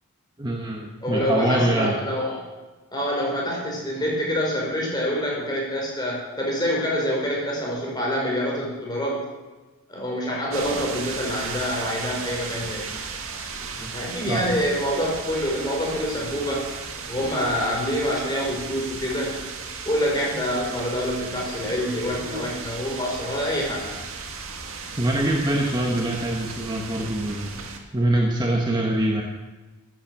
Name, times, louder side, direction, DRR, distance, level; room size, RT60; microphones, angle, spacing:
voice 1, 0.4-2.0 13.8-14.5 25.0-27.6 27.9-29.2, right 1 dB, 20° right, -1 dB, 1.4 m, -24 dB
voice 2, 1.0-2.4 2.9-9.2 9.9-12.9 13.9-16.7 17.1-19.3 19.8-23.9, equal, 20° left, -3 dB, 4.9 m, -26 dB
sound 1, 10.5-27.8, right 4 dB, 65° right, 1.9 m, -35 dB
15.5 x 8.9 x 7.6 m, 1.2 s
head